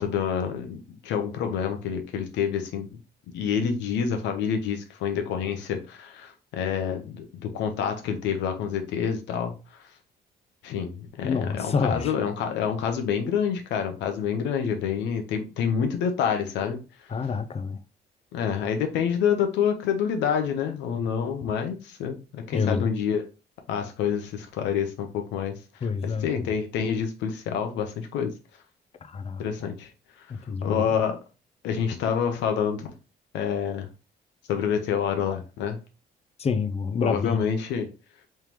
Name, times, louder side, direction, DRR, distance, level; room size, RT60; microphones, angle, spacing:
voice 1, 0.0-2.9 3.3-9.6 10.6-16.8 18.3-23.2 23.7-25.5 26.0-28.3 29.4-29.9 30.6-31.2 31.6-32.9 33.3-33.9 34.5-35.8 37.0-37.9, left 7 dB, 90° left, 0.8 m, -27 dB
voice 2, 11.2-12.1 17.1-17.8 22.5-22.9 25.8-26.3 29.0-29.7 30.3-30.9 36.4-37.4, left 5 dB, 35° left, 0.6 m, -27 dB
3.6 x 3.2 x 2.9 m
cardioid pair, 85°, 18 cm